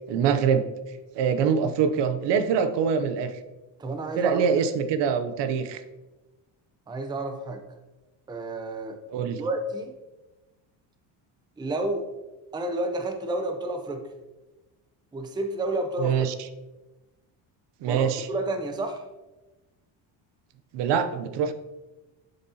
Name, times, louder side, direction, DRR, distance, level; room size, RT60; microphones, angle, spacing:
voice 1, 0.1-0.6 1.2-3.4 4.2-5.8 9.1-9.4 16.0-16.3 17.8-18.3 20.7-21.5, right 7 dB, 60° right, 9 dB, 0.7 m, -24 dB
voice 2, 3.8-4.4 6.9-7.6 8.3-9.9 11.6-12.1 12.5-14.0 15.1-16.3 17.8-19.1, right 2 dB, 10° right, 6 dB, 0.5 m, -30 dB
7.4 x 6.8 x 2.8 m, 1.1 s
cardioid pair, 125°, 47 cm